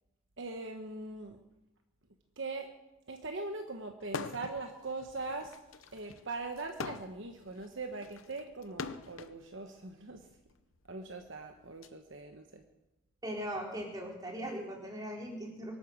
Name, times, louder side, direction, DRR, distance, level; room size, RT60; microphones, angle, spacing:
voice 1, 0.4-1.4 2.4-2.7 3.1-5.6 5.9-10.3 10.9-12.6, right 3 dB, 55° right, 5 dB, 1.2 m, -41 dB
sound 1, 4.0-4.6 5.0-9.4 10.2-11.9, left 5 dB, 65° left, 0.7 m, -43 dB
voice 2, 13.2-15.8, equal, 15° right, -1 dB, 3.4 m, -39 dB
23.5 x 9.3 x 6.4 m, 0.99 s
head